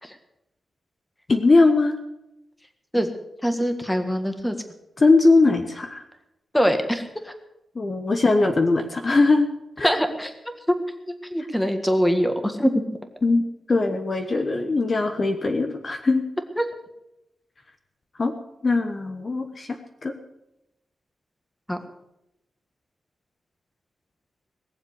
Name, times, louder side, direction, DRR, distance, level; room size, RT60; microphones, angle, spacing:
voice 1, 1.3-2.0 5.0-6.0 7.7-9.5 9.8-9.9 13.2-16.2 18.2-18.3 18.6-19.7 20.0-20.1, left 3 dB, 35° left, 5 dB, 1.2 m, -20 dB
voice 2, 3.4-4.6 6.5-7.3 9.8-10.3 10.7-10.8 11.3-12.7 16.6-16.7 21.7-21.8, equal, 5° left, 7 dB, 1.7 m, -23 dB
19.5 x 7.4 x 8.2 m, 0.90 s
wide cardioid pair, 120°, 0 cm